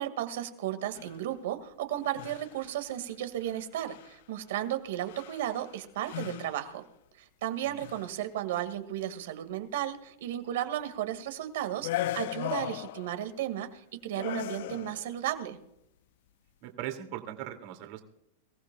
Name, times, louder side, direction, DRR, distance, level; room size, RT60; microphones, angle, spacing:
voice 1, 0.0-6.8 7.2-15.6, right 12 dB, 70° right, 9 dB, 1.9 m, -34 dB
sound 1, 0.9-1.3 2.0-2.7 3.4-3.6 3.9-4.2 5.0-5.7 6.0-6.7 7.7-8.1 11.8-13.3 14.2-15.2, left 13 dB, 65° left, 0.5 m, -37 dB
voice 2, 16.6-18.0, right 12 dB, 55° right, 5 dB, 2.5 m, -39 dB
25.0 x 15.0 x 2.3 m, 0.81 s
supercardioid pair, 135°, 0 cm